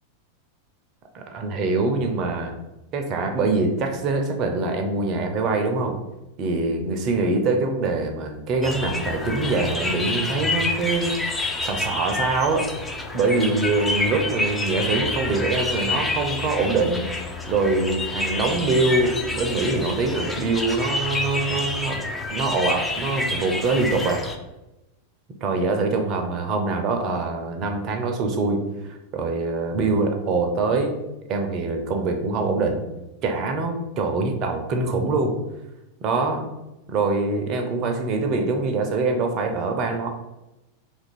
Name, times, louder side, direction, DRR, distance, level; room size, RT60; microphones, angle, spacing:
voice 1, 1.1-2.5 2.9-6.0 6.4-11.1 11.6-12.7 13.1-17.1 17.5-22.0 22.3-24.2 25.4-28.6 29.1-30.9 31.3-32.8 33.2-35.3 36.0-36.5 36.9-40.1, right 3 dB, 35° right, 4 dB, 0.5 m, -24 dB
sound 1, 8.6-24.4, left 2 dB, 10° left, 0.4 m, -28 dB
2.9 x 2.5 x 4.1 m, 0.98 s
figure-of-eight pair, 90°, 0 cm